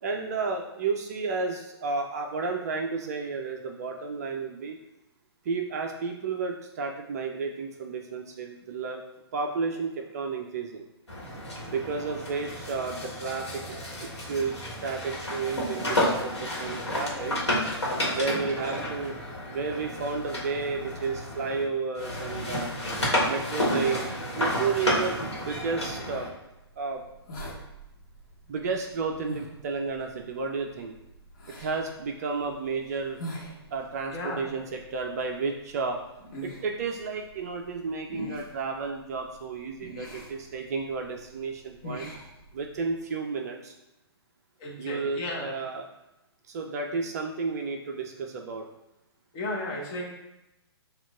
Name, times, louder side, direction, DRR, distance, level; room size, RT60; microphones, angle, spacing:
voice 1, 0.0-4.8 5.4-9.0 9.3-10.8 11.7-14.5 14.8-17.4 18.1-19.2 19.5-22.7 23.1-25.2 25.5-26.3 26.8-27.0 28.5-30.9 31.6-33.2 33.7-36.0 36.4-42.1 42.5-43.7 44.8-45.8 46.5-48.7, right 4 dB, 35° right, 2 dB, 0.4 m, -32 dB
sound 1, 11.1-21.6 22.0-26.3, left 1 dB, 85° left, 1.3 m, -31 dB
sound 2, 26.4-43.0, equal, 45° left, 1.2 m, -45 dB
voice 2, 34.1-34.5 44.6-45.5 49.3-50.0, left 1 dB, 25° left, -3 dB, 1.0 m, -34 dB
6.9 x 2.4 x 2.4 m, 0.95 s
figure-of-eight pair, 125°, 14 cm